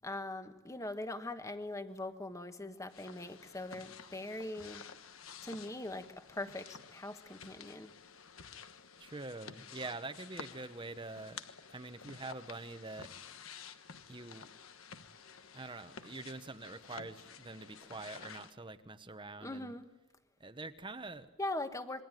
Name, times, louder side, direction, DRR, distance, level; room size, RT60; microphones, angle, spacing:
voice 1, 0.0-4.8 5.4-7.9 19.4-19.9 21.4-22.0, left 2 dB, 15° left, 9 dB, 1.4 m, -41 dB
sound 1, 2.9-18.5, left 6 dB, 80° left, 1.3 m, -52 dB
voice 2, 9.0-11.4 11.7-13.1 14.1-14.5 15.5-19.7 20.4-21.3, right 3 dB, 25° right, 10 dB, 0.9 m, -45 dB
27.0 x 22.0 x 9.1 m, 1.0 s
head